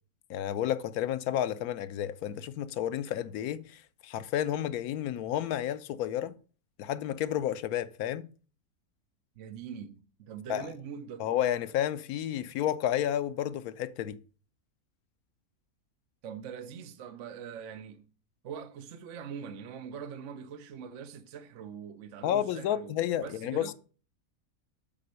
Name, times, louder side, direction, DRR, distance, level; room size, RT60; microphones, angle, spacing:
voice 1, 0.3-6.3 6.8-8.3 10.5-10.7 11.2-14.2 22.2-23.7, left 11 dB, 90° left, 1.1 m, -31 dB
voice 2, 9.4-11.3 16.2-18.1 18.4-22.9 23.2-23.7, right 7 dB, 65° right, 0.9 m, -43 dB
7.7 x 4.2 x 6.6 m
omnidirectional pair, 1.5 m